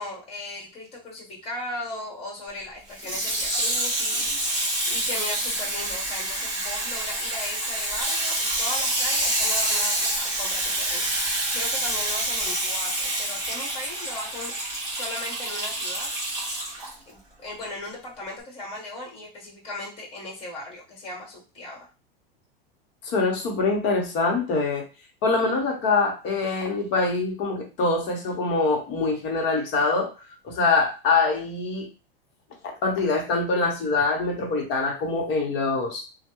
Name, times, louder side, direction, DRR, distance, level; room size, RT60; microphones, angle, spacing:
voice 1, 0.0-11.1 11.5-14.5 14.8-16.1 17.1-21.9, left 2 dB, 20° left, -3 dB, 1.4 m, -37 dB
Water tap faucet / Sink (filling or washing), 2.9-16.9 17.6-17.7, right 1 dB, 10° right, 1.9 m, -27 dB
voice 2, 23.0-24.9 25.2-30.1 30.4-31.9 32.8-36.0, left 3 dB, 40° left, 1 dB, 1.0 m, -24 dB
3.2 x 2.2 x 3.0 m, 0.31 s
supercardioid pair, 145°, 29 cm